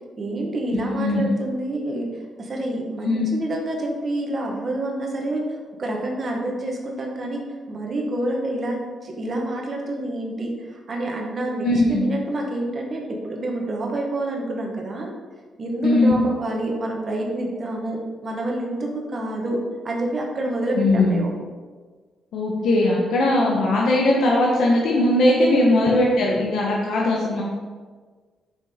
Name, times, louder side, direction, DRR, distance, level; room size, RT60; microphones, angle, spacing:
voice 1, 0.2-2.1 2.4-5.4 5.8-8.8 9.0-10.5 10.9-15.1 15.6-21.3 25.5-25.8, right 1 dB, 30° right, 0 dB, 1.1 m, -27 dB
voice 2, 0.7-1.2 3.0-3.3 11.6-12.1 15.8-16.2 20.7-21.3 22.3-27.4, left 2 dB, 65° left, -3 dB, 1.0 m, -19 dB
5.8 x 5.4 x 4.2 m, 1.5 s
cardioid pair, 175°, 0 cm